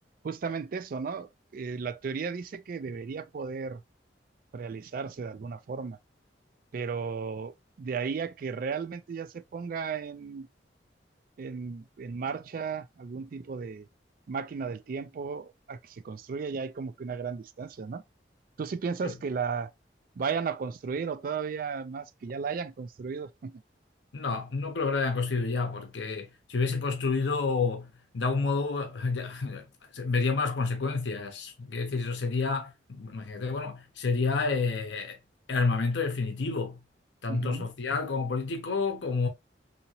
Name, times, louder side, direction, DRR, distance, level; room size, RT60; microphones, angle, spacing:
voice 1, 0.2-3.8 4.5-6.0 6.7-7.5 7.8-10.5 11.4-13.9 14.3-18.0 18.6-19.7 20.2-23.6 37.3-37.7, right 5 dB, 50° right, 0.3 m, -34 dB
voice 2, 24.1-29.7 29.9-35.2 35.5-36.8 37.2-39.3, left 4 dB, 80° left, 0.7 m, -29 dB
2.8 x 2.8 x 2.7 m
head